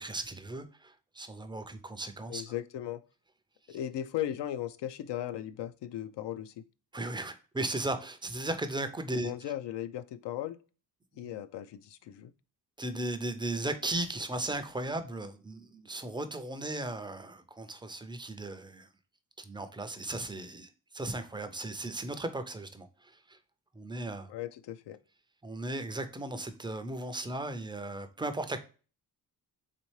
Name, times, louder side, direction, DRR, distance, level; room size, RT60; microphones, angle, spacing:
voice 1, 0.0-2.5 6.9-9.3 12.8-18.9 19.4-23.4 23.7-24.3 25.4-28.6, right 2 dB, 15° right, 0.3 m, -36 dB
voice 2, 2.3-3.0 3.7-6.6 9.2-10.6 11.1-12.3 24.3-25.0, left 11 dB, 90° left, 0.5 m, -37 dB
4.2 x 3.5 x 3.0 m
wide cardioid pair, 175°, 41 cm